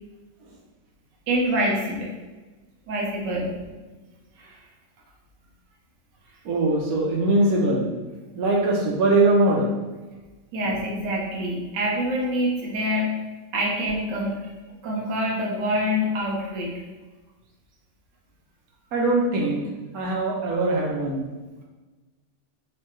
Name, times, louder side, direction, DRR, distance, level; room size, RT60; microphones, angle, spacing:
voice 1, 1.3-2.1 2.9-3.7 4.4-4.6 10.5-13.1 13.5-14.4 14.8-16.7, equal, 85° right, -2 dB, 1.5 m, -26 dB
voice 2, 6.4-7.9 8.3-9.7 18.9-19.7 19.9-21.3, right 2 dB, 60° right, -1 dB, 1.2 m, -21 dB
4.4 x 2.5 x 3.0 m, 1.2 s
omnidirectional pair, 1.9 m